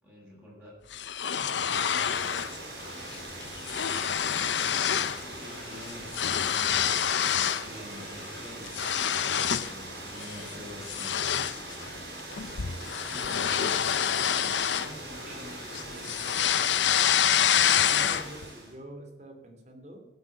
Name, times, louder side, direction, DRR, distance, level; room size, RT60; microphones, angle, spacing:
voice 1, 0.0-0.7 1.5-2.4 3.0-4.1 5.2-8.8 9.6-11.1 12.6-13.7 14.2-16.6, left 1 dB, 10° right, -5 dB, 7.7 m, -47 dB
sound 1, 0.9-2.6 2.9-3.2 3.4-5.2 5.5-7.7 8.1-9.8 10.2-10.4 10.9-15.4 15.7-18.4, left 9 dB, 90° left, 0.7 m, -27 dB
Water, 1.5-18.7, right 1 dB, 65° right, 6.2 m, -41 dB
voice 2, 17.5-20.0, right 1 dB, 40° right, 4 dB, 2.9 m, -45 dB
16.0 x 8.3 x 8.4 m, 0.97 s
head